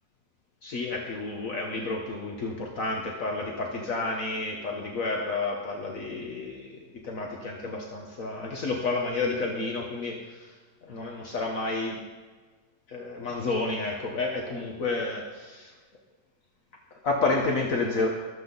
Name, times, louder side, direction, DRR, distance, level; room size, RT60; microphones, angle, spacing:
voice 1, 0.6-10.5 10.8-12.0 12.9-15.7 16.9-18.1, left 3 dB, 60° left, 0 dB, 1.6 m, -30 dB
22.5 x 7.8 x 4.0 m, 1.4 s
omnidirectional pair, 1.7 m